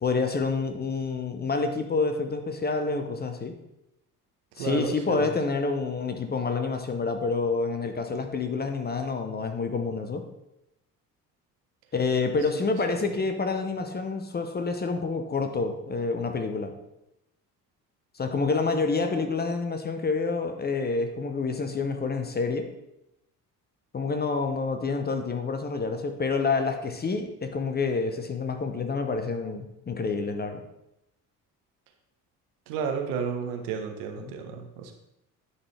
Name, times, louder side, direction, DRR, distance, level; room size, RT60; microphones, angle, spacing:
voice 1, 0.0-3.5 4.6-10.3 11.9-16.7 18.1-22.7 23.9-30.6 34.2-34.3, left 4 dB, 20° left, 6 dB, 0.7 m, -28 dB
voice 2, 4.6-5.3 32.7-34.9, right 6 dB, 65° right, 4 dB, 1.0 m, -32 dB
9.6 x 4.0 x 3.3 m, 0.86 s
figure-of-eight pair, 50°, 48 cm